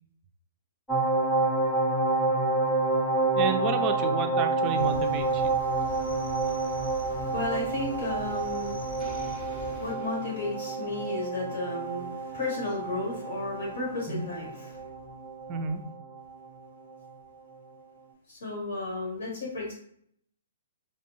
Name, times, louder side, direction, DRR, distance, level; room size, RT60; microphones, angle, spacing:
sound 1, 0.9-16.5 16.8-16.9, right 3 dB, 10° left, 0.7 m, -29 dB
voice 1, 3.4-5.5 14.1-14.3 15.5-15.8, right 6 dB, 30° right, 7 dB, 0.4 m, -31 dB
Cricket, 4.8-9.9, left 3 dB, 55° left, 0.8 m, -44 dB
voice 2, 5.7-14.8 18.3-19.7, left 2 dB, 80° left, -5 dB, 1.4 m, -34 dB
2.6 x 2.2 x 3.0 m, 0.65 s
hypercardioid pair, 140°, 0 cm